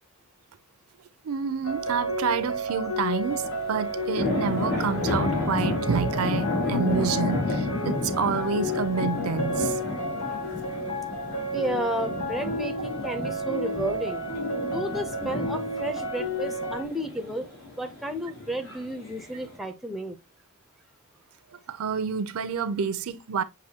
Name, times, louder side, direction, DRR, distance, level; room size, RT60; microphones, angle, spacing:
voice 1, 1.2-9.8 21.7-23.4, right 5 dB, 80° right, 0.5 m, -28 dB
sound 1, 1.6-16.8, equal, 85° left, 1.2 m, -32 dB
sound 2, 3.2-19.6, left 2 dB, 65° left, 2.9 m, -32 dB
voice 2, 11.4-14.2 14.6-17.5 17.8-20.2, right 1 dB, ahead, 0.5 m, -32 dB
6.7 x 2.6 x 2.8 m
head